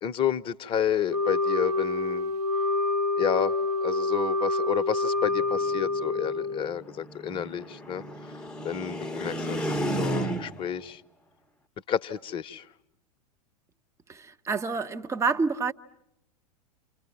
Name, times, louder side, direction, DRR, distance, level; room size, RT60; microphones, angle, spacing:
voice 1, 0.0-2.3 3.2-3.5 3.8-8.0 8.6-11.0 11.9-12.7, left 9 dB, 25° left, 1.0 m, -30 dB
Wind instrument woodwind instrument, 1.1-6.7, left 3 dB, 80° right, 1.2 m, -27 dB
sound 1, 5.3-10.8, right 1 dB, 5° left, 1.1 m, -34 dB
voice 2, 14.1-15.7, right 4 dB, 15° right, 1.1 m, -28 dB
29.5 x 28.0 x 7.1 m
figure-of-eight pair, 95°, 20 cm